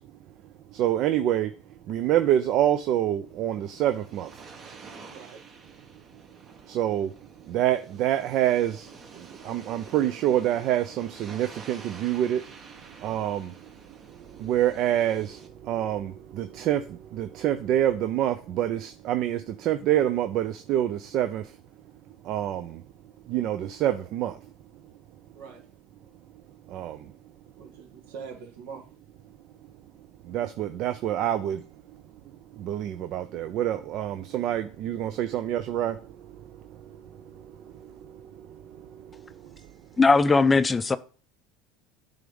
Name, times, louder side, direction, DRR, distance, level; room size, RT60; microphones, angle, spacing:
voice 1, 0.7-1.5 1.9-4.3 6.7-7.1 7.5-8.9 9.4-12.4 13.0-13.5 14.4-15.4 15.7-16.8 17.1-21.4 22.3-22.7 23.3-24.3 26.7-27.0 30.3-31.6 32.6-35.9, right 12 dB, 60° right, 0.5 m, -26 dB
sound 1, 3.2-15.5, right 4 dB, 40° right, 1.3 m, -49 dB
voice 2, 5.1-5.4 13.0-13.2 25.3-25.6 27.6-28.9, right 6 dB, 75° right, 1.8 m, -43 dB
voice 3, 40.0-41.0, left 4 dB, 20° left, 0.5 m, -19 dB
9.2 x 3.6 x 5.3 m
hypercardioid pair, 85°, 0 cm